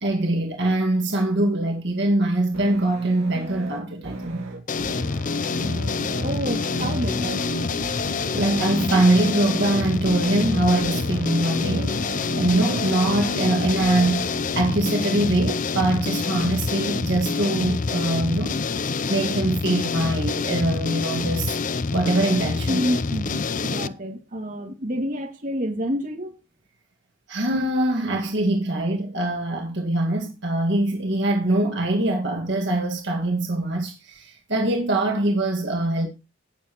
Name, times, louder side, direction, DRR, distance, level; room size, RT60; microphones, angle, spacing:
voice 1, 0.0-4.5 8.3-14.3 14.6-18.6 19.1-21.6 21.9-22.8 27.3-36.1, right 2 dB, 60° right, 1.8 m, -23 dB
sound 1, 2.5-14.5, right 2 dB, 80° right, 2.1 m, -34 dB
sound 2, 4.7-23.9, left 4 dB, 40° left, 0.5 m, -26 dB
voice 2, 6.1-7.4 22.7-26.4, equal, 40° right, 2.3 m, -28 dB
18.0 x 7.4 x 3.0 m
head